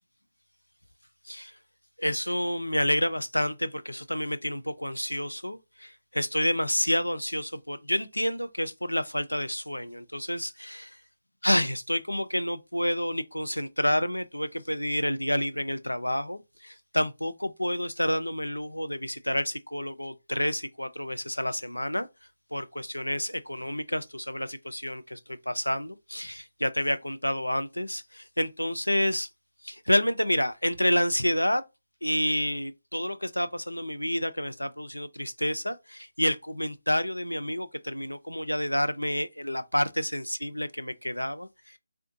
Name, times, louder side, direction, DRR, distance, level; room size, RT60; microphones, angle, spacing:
voice 1, 1.2-1.6 2.0-10.9 11.4-22.1 22.5-29.3 29.6-31.6 32.0-41.8, equal, 90° left, 0.4 m, -29 dB
3.4 x 2.4 x 2.7 m
figure-of-eight pair, 150°, 0 cm